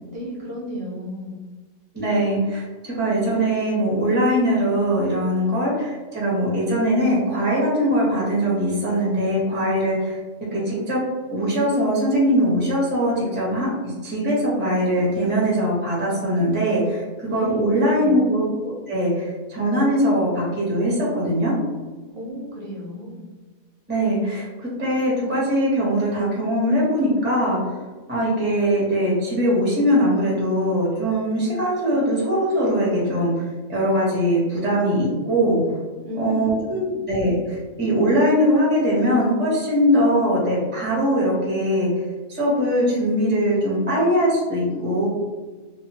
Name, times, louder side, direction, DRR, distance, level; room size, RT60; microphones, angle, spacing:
voice 1, 0.1-1.3 17.3-17.6 18.0-18.4 22.1-23.2 36.0-37.0, left 1 dB, 60° right, -3 dB, 0.9 m, -33 dB
voice 2, 1.9-10.2 10.5-11.0 11.3-17.0 17.3-21.5 23.9-24.5 24.8-27.6 28.1-35.6 36.1-41.9 42.3-45.1, equal, 10° right, -6 dB, 0.7 m, -21 dB
2.9 x 2.3 x 2.7 m, 1.3 s
omnidirectional pair, 1.3 m